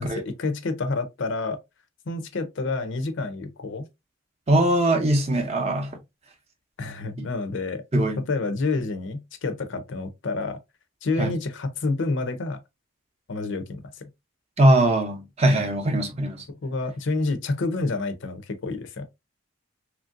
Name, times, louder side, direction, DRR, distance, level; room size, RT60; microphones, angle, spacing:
voice 1, 0.0-1.6 2.1-3.9 6.8-7.8 8.2-10.6 11.0-12.6 13.3-14.0 16.5-19.1, left 3 dB, 60° left, 0.5 m, -28 dB
voice 2, 4.5-6.0 7.2-7.3 7.9-8.2 11.2-11.3 14.6-16.4, right 1 dB, 30° right, 0.6 m, -21 dB
3.0 x 2.5 x 2.5 m
head